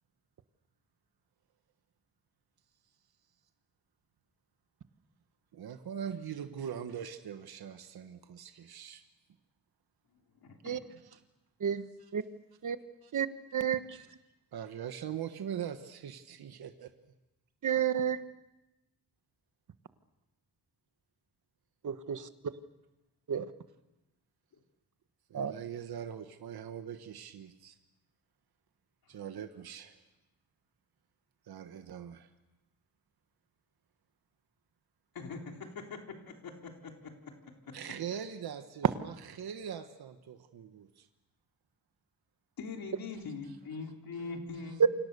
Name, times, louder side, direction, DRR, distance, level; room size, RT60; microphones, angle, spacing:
voice 1, 5.5-9.0 11.0-11.2 12.0-12.1 13.0-13.1 13.9-14.2 14.5-16.9 25.3-27.8 29.1-30.0 31.5-32.3 37.7-41.1, right 8 dB, 80° right, 7 dB, 1.4 m, -42 dB
voice 2, 10.4-10.8 29.1-29.2 35.1-37.1 37.7-37.8 42.6-44.9, left 4 dB, 65° left, 2 dB, 3.7 m, -42 dB
voice 3, 17.6-18.2 21.8-22.2 23.3-23.4 25.3-25.5 44.8-44.9, right 8 dB, 55° right, 11 dB, 1.3 m, -29 dB
28.5 x 25.5 x 6.8 m, 1.0 s
wide cardioid pair, 155°, 37 cm